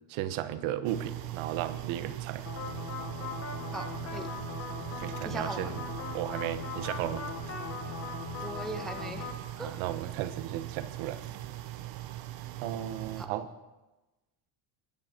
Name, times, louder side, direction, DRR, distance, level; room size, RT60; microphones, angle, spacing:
voice 1, 0.1-2.4 5.0-5.8 6.1-7.2 9.6-11.2 12.6-13.5, right 12 dB, 85° right, 11 dB, 1.2 m, -35 dB
sound 1, 0.8-13.3, right 15 dB, 50° right, 0.8 m, -40 dB
sound 2, 2.5-9.3, left 6 dB, 30° left, 1.2 m, -39 dB
voice 2, 5.2-5.7 8.4-9.3 9.6-9.8 13.2-13.3, right 2 dB, ahead, 5 dB, 0.3 m, -39 dB
18.0 x 11.0 x 4.5 m, 1.1 s
cardioid pair, 180°, 47 cm